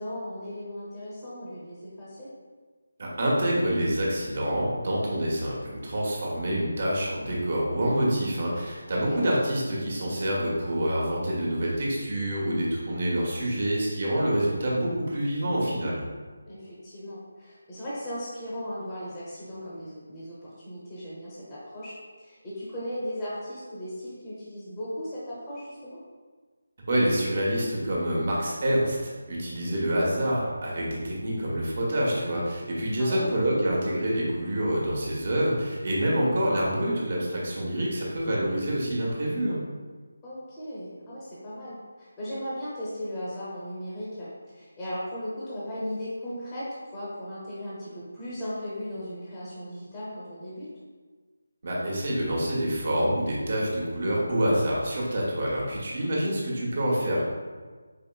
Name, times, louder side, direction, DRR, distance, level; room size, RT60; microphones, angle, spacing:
voice 1, 0.0-2.3 8.9-9.2 16.4-26.0 33.0-33.4 36.0-36.2 40.2-50.7, equal, 15° left, -9 dB, 0.8 m, -37 dB
voice 2, 3.0-16.0 26.9-39.6 51.6-57.2, equal, 50° right, -4 dB, 1.1 m, -27 dB
4.8 x 2.9 x 2.3 m, 1.4 s
figure-of-eight pair, 160°, 0 cm